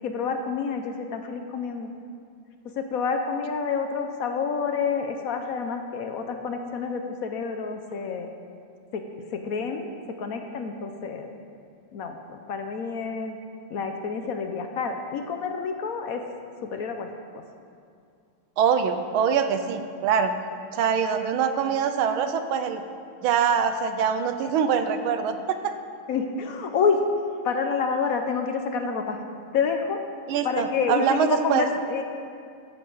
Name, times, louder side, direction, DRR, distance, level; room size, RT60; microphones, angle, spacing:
voice 1, 0.0-1.9 2.8-8.3 8.9-9.0 9.3-9.9 10.2-11.3 11.9-13.4 13.7-16.2 16.7-17.4 26.1-27.0 27.4-29.2 29.5-30.0 30.4-32.0, left 5 dB, 65° left, 5 dB, 0.9 m, -28 dB
voice 2, 18.6-20.3 20.7-22.8 23.2-25.7 30.3-31.7, right 7 dB, 85° right, 8 dB, 1.6 m, -24 dB
13.0 x 10.5 x 3.9 m, 2.4 s
omnidirectional pair, 2.2 m